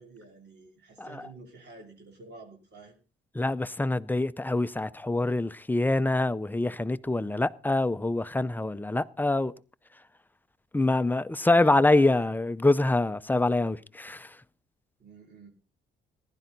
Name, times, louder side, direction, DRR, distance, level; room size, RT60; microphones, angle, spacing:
voice 1, 0.0-3.0 11.6-12.2 15.0-15.5, right 3 dB, 60° right, 3.2 m, -49 dB
voice 2, 3.4-9.5 10.7-14.3, left 2 dB, 10° left, 0.5 m, -25 dB
15.5 x 11.5 x 4.0 m
cardioid pair, 90°, 20 cm